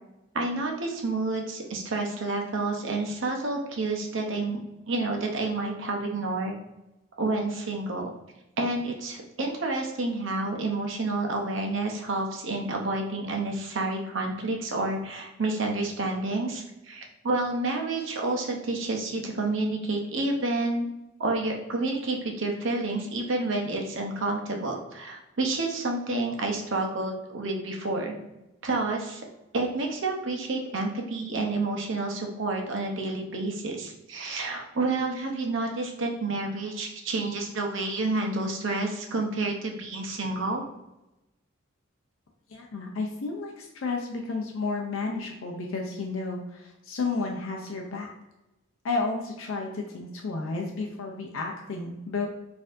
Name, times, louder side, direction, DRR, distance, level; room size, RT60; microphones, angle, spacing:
voice 1, 0.3-4.6 4.9-6.5 7.2-8.1 8.6-20.9 21.2-28.2 28.6-29.2 29.5-40.6, right 2 dB, 60° right, 1 dB, 0.7 m, -29 dB
voice 2, 42.5-48.1 48.8-52.3, left 3 dB, 70° left, 1 dB, 0.5 m, -32 dB
4.2 x 2.6 x 2.5 m, 0.95 s
head